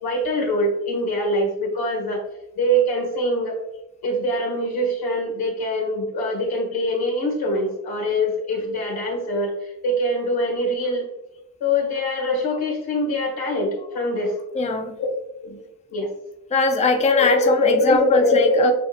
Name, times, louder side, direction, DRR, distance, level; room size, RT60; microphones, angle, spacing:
voice 1, 0.0-2.2 2.6-3.6 4.0-11.1 11.6-14.3 15.4-15.6 15.9-16.1 17.1-18.7, left 1 dB, 75° left, 0 dB, 1.7 m, -23 dB
voice 2, 14.5-15.0 16.5-18.7, left 3 dB, 20° left, 4 dB, 0.5 m, -21 dB
7.5 x 2.8 x 2.5 m, 0.93 s
cardioid pair, 65°, 37 cm